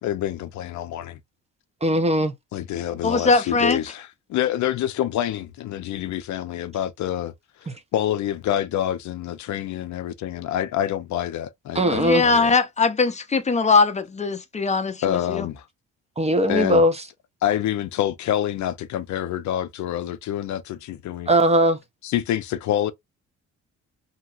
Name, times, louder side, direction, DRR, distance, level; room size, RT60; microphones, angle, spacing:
voice 1, 0.0-1.2 2.5-7.3 7.9-12.5 15.0-15.7 16.5-16.8 17.4-21.3 22.0-22.9, left 11 dB, 70° left, 0.5 m, -27 dB
voice 2, 1.8-2.3 7.7-7.8 11.7-12.2 16.2-17.0 21.3-21.8, right 1 dB, 20° right, 0.7 m, -19 dB
voice 3, 3.0-3.8 11.9-15.5, left 4 dB, 25° left, 0.6 m, -21 dB
2.8 x 2.8 x 2.3 m
cardioid pair, 90°, 30 cm